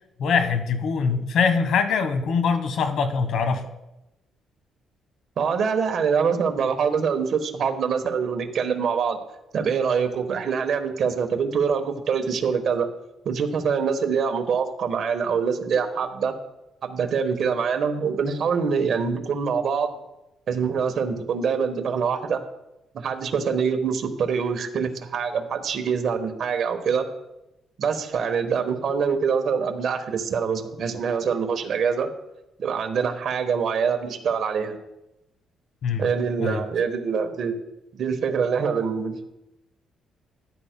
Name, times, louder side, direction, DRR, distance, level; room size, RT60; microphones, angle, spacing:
voice 1, 0.2-3.7 35.8-36.1 36.4-36.6, left 5 dB, 75° left, 8 dB, 1.3 m, -23 dB
voice 2, 5.4-9.2 9.5-12.9 13.2-16.3 16.8-19.9 20.5-22.4 22.9-27.1 27.8-32.1 32.6-34.8 36.0-37.5 37.9-39.2, right 6 dB, 60° right, 5 dB, 1.2 m, -24 dB
14.0 x 10.5 x 2.2 m, 0.92 s
cardioid pair, 90°, 0 cm